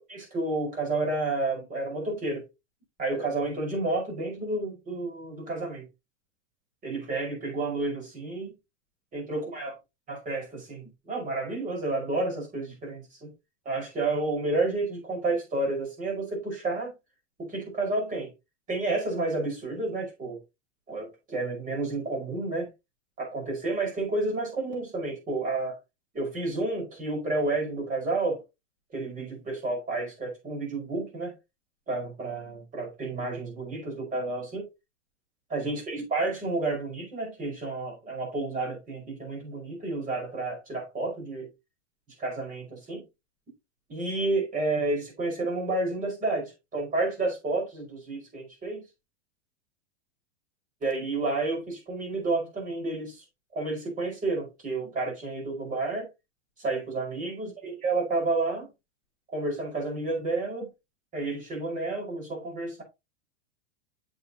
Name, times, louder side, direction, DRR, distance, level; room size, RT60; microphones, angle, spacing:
voice 1, 0.1-2.4 3.0-5.9 6.8-8.5 9.1-9.7 10.1-13.3 13.6-16.9 17.4-18.3 18.7-20.4 20.9-22.7 23.2-25.8 26.1-28.4 28.9-31.4 31.9-34.7 35.5-41.5 42.2-43.0 43.9-48.8 50.8-53.2 53.5-56.1 56.6-58.7 59.3-60.7 61.1-62.8, right 2 dB, 20° right, 5.2 m, -30 dB
8.0 x 7.3 x 2.9 m
supercardioid pair, 145°, 36 cm